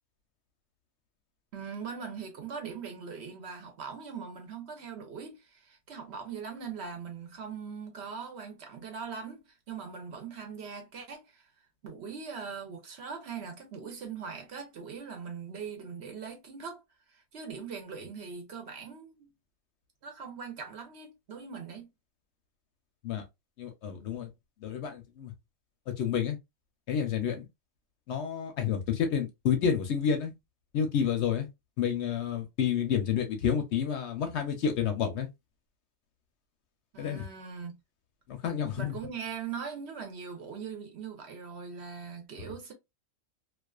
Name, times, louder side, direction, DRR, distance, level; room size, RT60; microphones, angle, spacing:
voice 1, 1.5-11.5 11.8-16.8 17.1-19.3 20.0-21.9 36.9-37.8 38.8-42.7, right 6 dB, 60° right, 0.9 m, -41 dB
voice 2, 23.6-24.3 24.6-25.3 26.0-26.4 26.9-27.5 28.1-30.3 30.7-31.5 31.8-35.3 37.0-37.2 38.3-38.9, left 8 dB, 65° left, 0.8 m, -29 dB
2.4 x 2.3 x 2.3 m
omnidirectional pair, 1.4 m